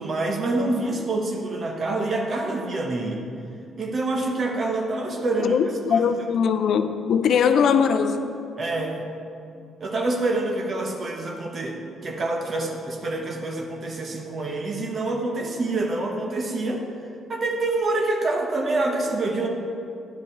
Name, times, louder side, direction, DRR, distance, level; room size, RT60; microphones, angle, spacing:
voice 1, 0.0-3.2 3.8-5.6 5.9-6.0 8.6-8.9 9.8-11.8 12.0-16.8 17.3-19.5, right 2 dB, 45° right, 1 dB, 1.0 m, -26 dB
voice 2, 5.4-8.3, left 7 dB, 70° left, 9 dB, 0.5 m, -21 dB
10.5 x 5.4 x 4.7 m, 2.6 s
cardioid pair, 90°, 0 cm